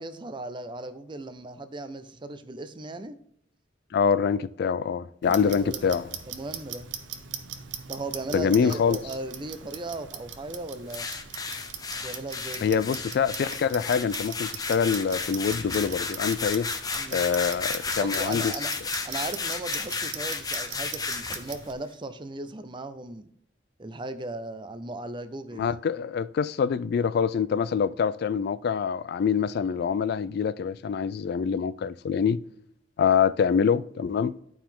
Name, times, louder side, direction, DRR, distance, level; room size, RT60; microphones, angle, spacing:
voice 1, 0.0-3.2 5.3-5.8 6.3-6.9 7.9-11.1 12.0-12.7 17.0-17.2 17.9-18.7 19.0-23.3 23.8-25.8, right 2 dB, 25° right, 0.6 m, -37 dB
voice 2, 3.9-6.1 8.3-9.0 12.6-16.7 17.1-18.5 25.5-32.4 33.0-34.3, left 6 dB, 60° left, 0.3 m, -25 dB
Clock, 5.2-21.7, right 8 dB, 75° right, 0.8 m, -41 dB
sound 1, 10.9-21.6, left 4 dB, 20° left, 0.6 m, -33 dB
11.0 x 4.6 x 3.7 m
head